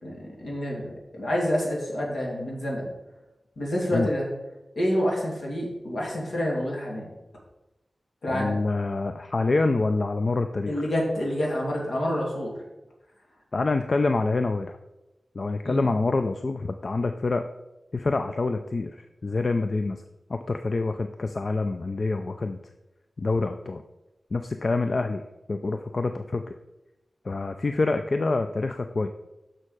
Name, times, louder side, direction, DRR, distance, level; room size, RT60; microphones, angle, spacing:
voice 1, 0.0-2.9 3.6-4.3 4.8-7.1 8.2-8.6 10.7-12.5 15.6-15.9, equal, 80° left, -2 dB, 2.4 m, -28 dB
voice 2, 8.3-10.8 13.5-14.8 15.3-17.4 17.9-20.0 20.3-22.6 23.2-23.8 24.3-25.2 25.5-26.5 27.2-29.1, left 3 dB, 55° left, 8 dB, 0.4 m, -26 dB
6.6 x 6.2 x 4.9 m, 0.98 s
wide cardioid pair, 90°, 0 cm